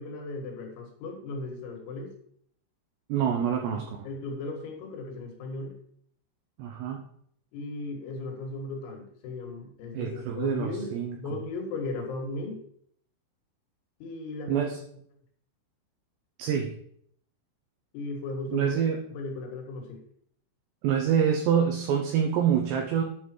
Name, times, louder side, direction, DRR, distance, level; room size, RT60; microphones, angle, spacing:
voice 1, 0.0-2.1 3.7-5.7 7.5-10.9 11.2-12.6 14.0-14.7 17.9-18.7 19.1-20.0, left 2 dB, 90° left, 1 dB, 4.5 m, -36 dB
voice 2, 3.1-4.0 6.6-7.0 9.9-11.2 14.5-14.8 16.4-16.7 18.5-19.0 20.8-23.0, right 8 dB, 85° right, 2 dB, 2.4 m, -26 dB
9.7 x 6.3 x 4.5 m, 0.66 s
omnidirectional pair, 6.0 m